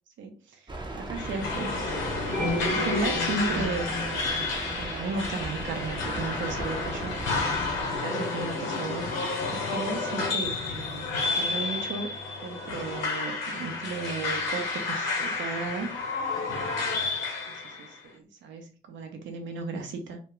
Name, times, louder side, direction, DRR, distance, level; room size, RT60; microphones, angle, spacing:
voice 1, 0.2-1.7 2.3-7.1 7.8-9.1 9.5-12.1 12.4-15.9 17.5-20.2, right 3 dB, 70° right, 5 dB, 0.8 m, -35 dB
sound 1, 0.7-8.0, right 1 dB, 20° right, 0.7 m, -37 dB
sound 2, 1.2-18.0, left 3 dB, 85° left, 0.7 m, -31 dB
sound 3, 2.3-5.5, left 1 dB, 5° left, 0.8 m, -33 dB
2.4 x 2.3 x 3.0 m, 0.39 s
supercardioid pair, 60°, 20 cm